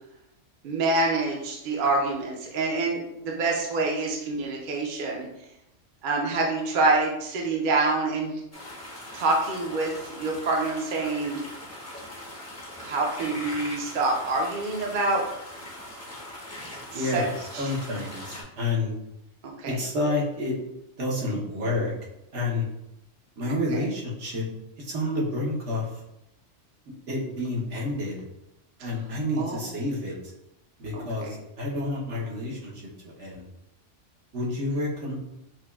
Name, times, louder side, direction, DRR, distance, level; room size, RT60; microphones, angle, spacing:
voice 1, 0.6-5.3 6.0-8.4 9.1-11.4 12.8-15.2 16.9-17.2 17.5-17.7 19.6-19.8 23.7-23.8 29.4-29.8 30.9-31.3, right 3 dB, 55° right, -1 dB, 0.7 m, -26 dB
sound 1, 8.5-18.4, left 1 dB, 15° left, 0.6 m, -41 dB
voice 2, 16.9-17.3 17.6-18.9 19.7-20.5 21.0-21.9 22.3-22.7 23.4-24.4 24.8-25.9 27.1-28.2 28.8-30.1 30.8-32.8 33.2-33.4 34.3-35.1, left 2 dB, 75° right, -3 dB, 1.2 m, -29 dB
5.9 x 2.2 x 2.3 m, 0.85 s
omnidirectional pair, 1.2 m